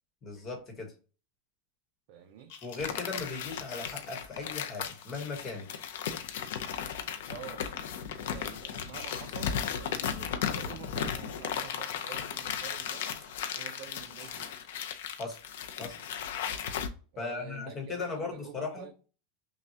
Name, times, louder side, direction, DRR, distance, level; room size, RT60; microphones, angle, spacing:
voice 1, 0.2-0.9 2.6-5.7 15.2-15.4 15.8-15.9 17.2-18.9, left 4 dB, 20° left, 1.2 m, -37 dB
voice 2, 2.1-2.6 7.3-7.7 8.3-13.1 13.5-14.6 17.1-18.9, right 9 dB, 50° right, 0.5 m, -48 dB
Chewing mastication, 2.2-2.3 2.5-6.5 6.8-6.9 7.4-7.7 8.0-8.5 8.8-10.3 10.6-10.8 11.3-11.5 11.8-15.8 16.2-16.5, left 5 dB, 55° left, 1.2 m, -53 dB
sound 1, 2.8-16.9, left 8 dB, 75° left, 0.6 m, -36 dB
5.8 x 2.3 x 2.8 m
supercardioid pair, 165°, 0 cm